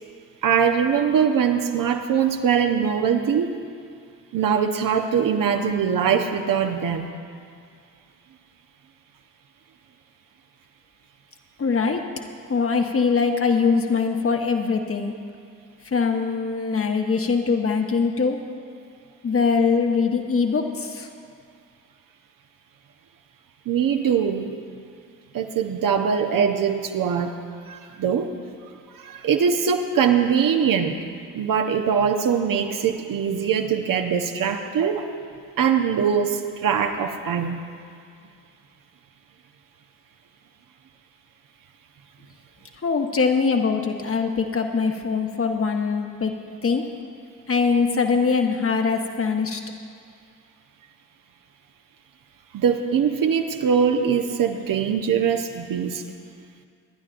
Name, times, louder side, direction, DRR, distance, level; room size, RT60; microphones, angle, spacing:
voice 1, 0.4-3.5 4.3-7.2 23.6-24.5 25.3-27.4 27.7-28.4 28.9-31.0 31.3-35.1 35.6-37.6 52.5-56.0, right 7 dB, 50° right, 5 dB, 1.1 m, -22 dB
voice 2, 11.6-12.1 12.5-15.1 15.9-18.4 19.2-21.1 42.8-46.9 47.5-49.6, left 5 dB, 30° left, 3 dB, 1.4 m, -22 dB
24.0 x 11.0 x 2.6 m, 2.3 s
figure-of-eight pair, 45°, 42 cm